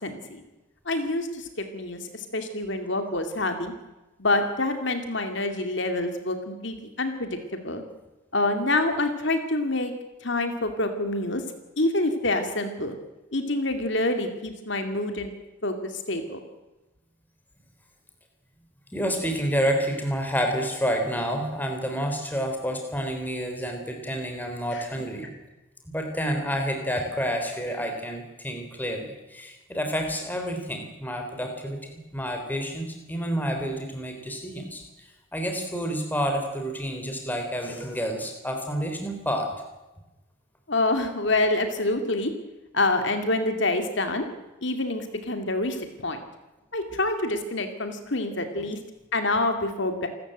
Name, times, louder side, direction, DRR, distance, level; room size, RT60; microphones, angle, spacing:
voice 1, 0.0-0.4 0.9-3.7 4.2-7.8 8.3-9.9 10.2-11.4 11.8-13.0 13.3-15.3 15.6-16.4 24.7-24.9 40.7-42.3 42.7-44.3 44.6-46.2 46.7-48.8 49.1-50.1, left 2 dB, 60° left, 6 dB, 2.3 m, -27 dB
voice 2, 18.9-25.3 25.9-39.5 48.5-48.7, equal, 10° left, 4 dB, 3.7 m, -29 dB
28.0 x 13.5 x 9.0 m, 1.1 s
head